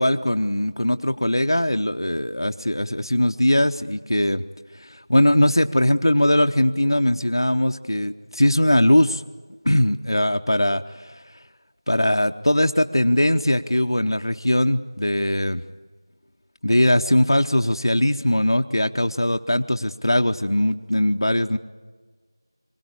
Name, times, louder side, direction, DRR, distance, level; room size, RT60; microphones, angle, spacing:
voice 1, 0.0-4.4 4.8-9.2 9.6-11.2 11.9-15.6 16.6-21.6, left 1 dB, 80° left, 5 dB, 0.8 m, -20 dB
25.0 x 17.0 x 8.4 m, 1.5 s
figure-of-eight pair, 175°, 2 cm